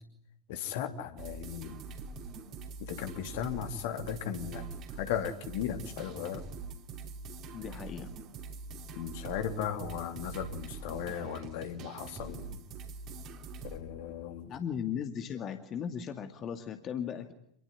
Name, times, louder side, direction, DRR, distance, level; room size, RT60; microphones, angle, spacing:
voice 1, 0.5-1.8 2.8-6.4 8.9-12.6 13.6-14.5, left 9 dB, 50° left, 7 dB, 2.9 m, -37 dB
sound 1, 1.2-13.8, right 4 dB, 35° right, 3.5 m, -44 dB
voice 2, 7.5-8.1 14.5-17.3, left 8 dB, 30° left, 7 dB, 2.3 m, -37 dB
27.5 x 21.0 x 9.8 m, 0.72 s
figure-of-eight pair, 90°, 0 cm